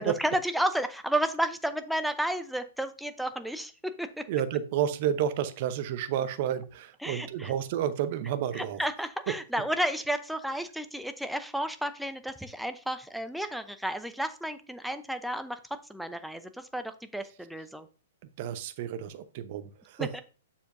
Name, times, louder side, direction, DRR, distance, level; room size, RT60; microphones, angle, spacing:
voice 1, 0.0-4.3 7.0-7.5 8.6-17.9 20.0-20.2, right 1 dB, ahead, 9 dB, 0.6 m, -32 dB
voice 2, 4.3-8.8 18.4-20.2, right 10 dB, 50° right, 11 dB, 0.8 m, -31 dB
7.1 x 6.9 x 2.6 m, 0.36 s
hypercardioid pair, 115°, 0 cm